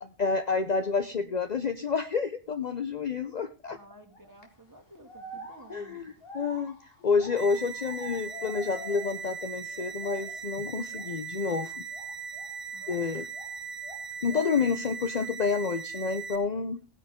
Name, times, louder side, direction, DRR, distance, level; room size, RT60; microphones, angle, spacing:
voice 1, 0.0-3.8 5.7-6.8 7.0-11.8 12.9-13.3 14.2-16.8, left 5 dB, 45° left, 9 dB, 0.8 m, -29 dB
voice 2, 3.3-6.1 7.0-7.2 12.7-13.2, right 1 dB, 15° right, 2 dB, 2.2 m, -54 dB
sound 1, 4.1-4.4 5.0-9.4 9.7-10.5 10.9-11.1 11.9-13.6 13.8-14.6, equal, 60° left, 2.2 m, -47 dB
sound 2, 7.4-16.4, right 5 dB, 75° right, 1.7 m, -39 dB
16.5 x 10.0 x 3.7 m, 0.32 s
omnidirectional pair, 1.1 m